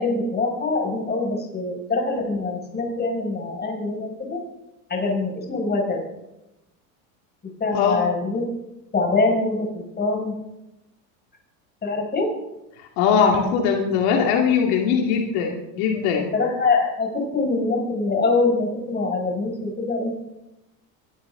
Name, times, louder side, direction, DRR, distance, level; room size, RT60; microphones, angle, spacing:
voice 1, 0.0-4.4 4.9-6.0 7.4-8.5 8.9-10.3 11.8-12.3 16.3-20.2, left 3 dB, 25° left, 1 dB, 6.1 m, -24 dB
voice 2, 12.8-16.2, left 6 dB, 70° left, 1 dB, 2.6 m, -21 dB
23.0 x 13.0 x 3.8 m, 0.91 s
supercardioid pair, 115°, 41 cm